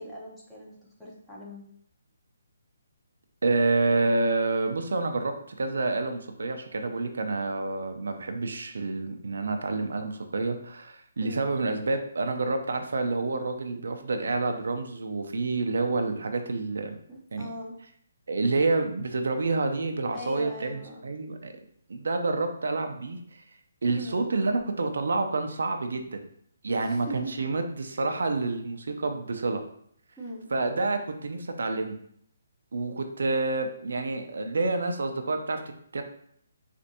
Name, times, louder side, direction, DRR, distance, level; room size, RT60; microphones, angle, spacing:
voice 1, 0.0-1.6 11.2-11.5 17.1-17.8 20.1-21.1 23.9-24.2 26.7-27.3 30.2-30.5, equal, 5° left, -5 dB, 0.8 m, -40 dB
voice 2, 3.4-17.0 17.3-17.5 18.3-21.5 21.9-23.4 23.8-26.2 26.6-29.6 30.5-32.0 32.7-35.6 35.9-36.0, right 3 dB, 75° right, 6 dB, 0.4 m, -28 dB
4.3 x 2.5 x 2.7 m, 0.66 s
hypercardioid pair, 160°, 0 cm